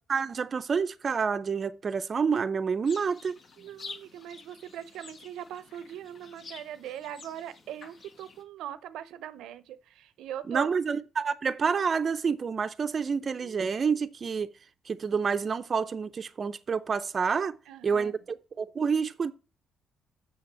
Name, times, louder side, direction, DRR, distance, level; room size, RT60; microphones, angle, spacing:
voice 1, 0.1-3.4 10.5-14.5 14.9-17.6 17.8-19.3, right 5 dB, 40° right, 0.5 m, -28 dB
sound 1, 2.8-8.4, left 4 dB, 55° left, 1.6 m, -49 dB
voice 2, 3.6-11.0 13.4-13.7 17.7-18.2, right 10 dB, 85° right, 0.6 m, -41 dB
6.8 x 6.3 x 6.0 m
cardioid pair, 90°, 0 cm